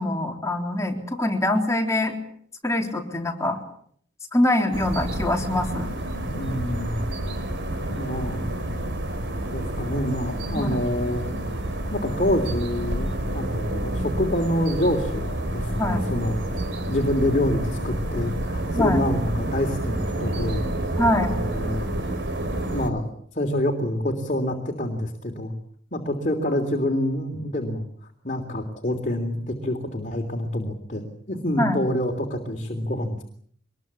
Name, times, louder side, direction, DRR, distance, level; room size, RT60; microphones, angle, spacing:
voice 1, 0.0-2.2 2.6-3.6 4.3-5.9 10.5-10.8 15.8-16.0 18.7-19.0 21.0-21.3 31.6-31.8, left 1 dB, 15° left, 3 dB, 3.6 m, -24 dB
sound 1, 4.7-22.9, right 1 dB, 65° right, 3.5 m, -29 dB
voice 2, 6.2-7.0 7.9-8.4 9.4-11.2 11.9-20.6 21.3-21.9 22.5-25.5 25.9-27.8 28.2-33.2, left 1 dB, 40° left, 3 dB, 3.2 m, -27 dB
24.5 x 21.5 x 8.4 m, 0.63 s
head